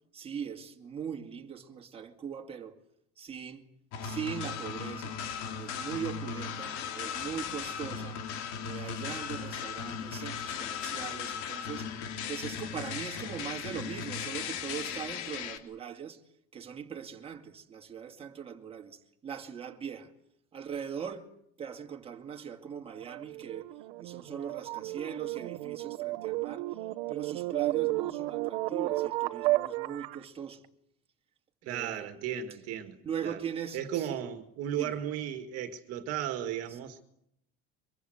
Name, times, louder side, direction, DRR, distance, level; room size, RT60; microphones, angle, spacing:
voice 1, 0.1-2.8 3.2-3.7 4.0-5.2 5.6-8.2 8.6-11.9 12.3-16.2 16.5-20.1 20.5-21.3 21.6-23.7 24.0-26.8 27.1-30.6 31.6-32.1 33.0-34.2 34.8-35.0 36.7-37.0, right 8 dB, 20° right, 2.4 m, -40 dB
sound 1, 3.9-15.6, left 7 dB, 60° left, 3.2 m, -37 dB
sound 2, 22.9-30.2, right 19 dB, 80° right, 1.1 m, -33 dB
voice 2, 31.7-33.0 33.2-33.4 33.7-37.0, right 10 dB, 50° right, 2.0 m, -35 dB
24.5 x 22.0 x 7.9 m
cardioid pair, 165°, 32 cm